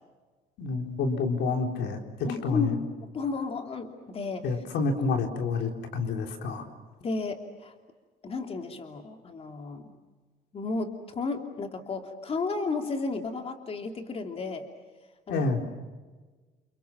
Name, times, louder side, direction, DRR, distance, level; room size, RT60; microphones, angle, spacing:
voice 1, 0.6-2.0 2.4-2.8 4.4-6.7 15.3-15.6, left 4 dB, 85° left, 4 dB, 3.9 m, -28 dB
voice 2, 2.2-2.7 3.0-4.5 7.0-7.7 8.2-9.8 10.5-14.7 15.3-15.5, left 4 dB, 35° left, 4 dB, 2.9 m, -33 dB
30.0 x 29.5 x 5.9 m, 1.4 s
cardioid pair, 140°, 17 cm